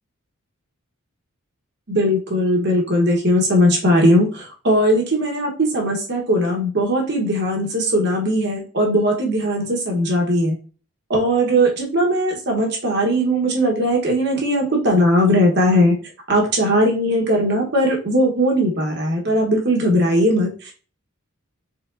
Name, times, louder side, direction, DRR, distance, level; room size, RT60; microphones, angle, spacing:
voice 1, 1.9-10.6 11.1-15.9 16.3-20.8, equal, 50° right, 0 dB, 1.0 m, -19 dB
4.6 x 3.5 x 2.5 m, 0.38 s
head